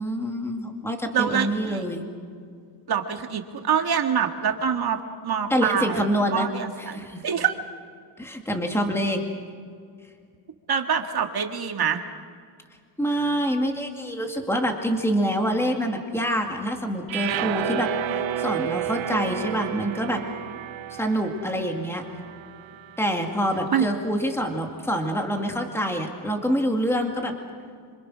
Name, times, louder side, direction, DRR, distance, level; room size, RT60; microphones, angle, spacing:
voice 1, 0.0-2.1 5.5-6.5 6.8-7.2 8.2-9.2 13.0-17.9 18.4-20.2 20.9-22.0 23.0-27.3, equal, 5° left, 3 dB, 2.3 m, -26 dB
voice 2, 1.1-1.8 2.9-5.0 5.2-6.1 6.3-7.0 7.2-7.6 10.7-12.0 23.7-23.9, right 7 dB, 50° right, 5 dB, 1.8 m, -25 dB
sound 1, 17.1-23.4, right 9 dB, 65° right, 0.9 m, -31 dB
27.0 x 26.0 x 6.3 m, 2.2 s
wide cardioid pair, 165°, 50 cm